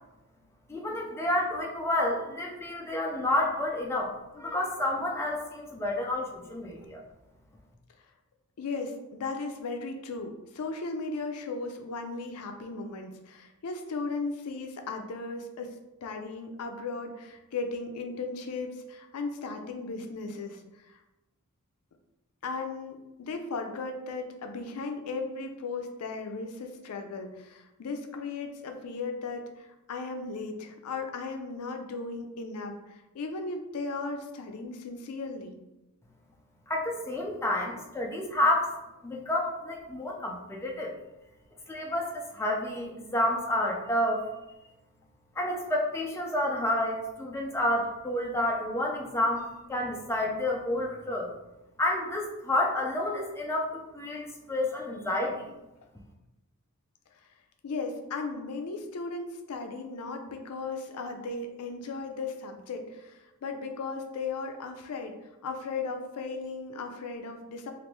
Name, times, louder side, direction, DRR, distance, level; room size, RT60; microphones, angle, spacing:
voice 1, 0.7-7.0 36.7-38.7 39.0-40.9 41.7-44.3 45.4-51.3 51.8-55.5, left 1 dB, 10° left, -1 dB, 0.4 m, -29 dB
voice 2, 8.6-15.7 16.0-20.6 22.4-32.8 33.1-35.6 57.6-65.2 65.4-67.7, left 3 dB, 85° left, 5 dB, 0.4 m, -36 dB
3.2 x 2.5 x 3.0 m, 0.98 s
head